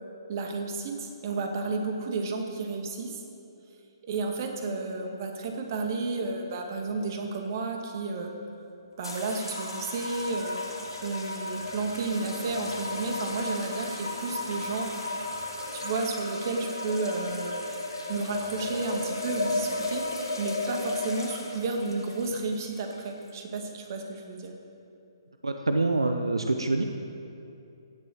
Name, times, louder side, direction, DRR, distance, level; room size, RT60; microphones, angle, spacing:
voice 1, 0.3-3.2 4.0-8.3 9.0-10.6 11.0-14.9 15.7-17.7 18.1-20.1 20.4-24.5, right 3 dB, 45° right, 2 dB, 2.1 m, -32 dB
sound 1, 9.0-23.3, left 2 dB, 85° left, 3.0 m, -34 dB
voice 2, 25.4-26.8, right 2 dB, 80° right, 6 dB, 0.8 m, -26 dB
16.5 x 7.2 x 7.7 m, 2.7 s
figure-of-eight pair, 135°, 2 cm